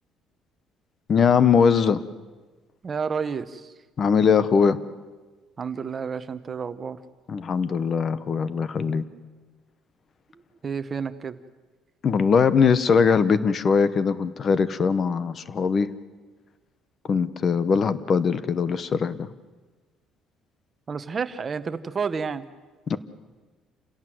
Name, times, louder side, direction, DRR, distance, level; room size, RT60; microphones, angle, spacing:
voice 1, 1.1-2.0 4.0-4.8 7.3-9.0 12.0-15.9 17.1-19.3 22.9-23.0, left 6 dB, 30° left, 15 dB, 0.9 m, -21 dB
voice 2, 2.8-3.7 5.6-7.0 10.6-11.4 20.9-22.5, right 6 dB, 25° right, 12 dB, 0.9 m, -30 dB
28.5 x 17.0 x 7.8 m, 1.3 s
cardioid pair, 170°, 0 cm